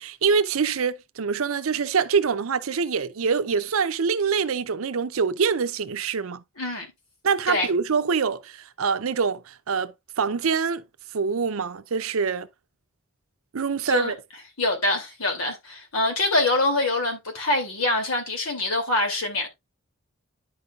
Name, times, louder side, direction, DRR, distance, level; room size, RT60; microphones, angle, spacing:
voice 1, 0.0-6.4 7.2-10.8 11.1-12.5 13.5-14.2, right 5 dB, 75° right, 0.6 m, -25 dB
voice 2, 6.6-6.9 7.5-7.7 13.9-14.1 14.6-19.5, left 2 dB, 80° left, 2.7 m, -24 dB
10.5 x 5.3 x 2.4 m
head